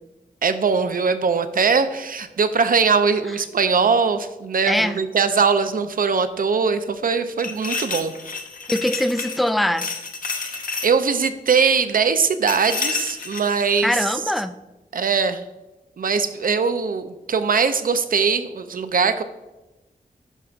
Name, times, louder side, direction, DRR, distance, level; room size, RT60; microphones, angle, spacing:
voice 1, 0.4-8.1 10.5-14.1 14.9-15.4 16.0-19.2, right 5 dB, 65° right, 10 dB, 0.6 m, -21 dB
voice 2, 4.7-5.0 8.7-9.8 13.8-14.5, left 1 dB, ahead, 11 dB, 0.4 m, -22 dB
sound 1, 7.4-9.5 9.8-10.9 12.5-13.8, left 4 dB, 60° left, 0.8 m, -30 dB
11.0 x 5.8 x 2.5 m, 1.1 s
wide cardioid pair, 80°, 16 cm